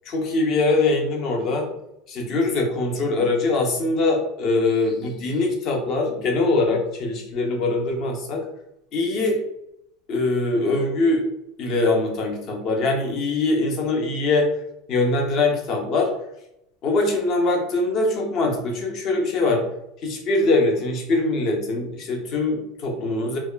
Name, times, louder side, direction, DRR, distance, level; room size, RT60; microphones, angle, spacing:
voice 1, 0.1-1.7 2.1-8.4 8.9-9.4 10.1-11.2 11.6-14.5 14.9-16.1 16.8-19.6 20.0-23.4, left 2 dB, 45° left, 1 dB, 0.7 m, -22 dB
2.8 x 2.2 x 2.3 m, 0.82 s
supercardioid pair, 125°, 0 cm